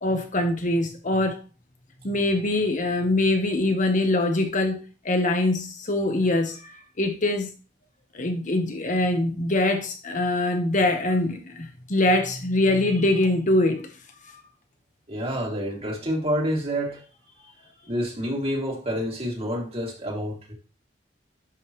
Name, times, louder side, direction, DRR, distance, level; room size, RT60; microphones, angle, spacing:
voice 1, 0.0-1.4 2.0-6.7 7.0-7.5 8.1-13.9, left 2 dB, 45° left, 1.1 m, -23 dB
voice 2, 15.1-17.0 17.9-20.5, equal, 35° right, 2.5 m, -28 dB
11.0 x 5.3 x 3.1 m
head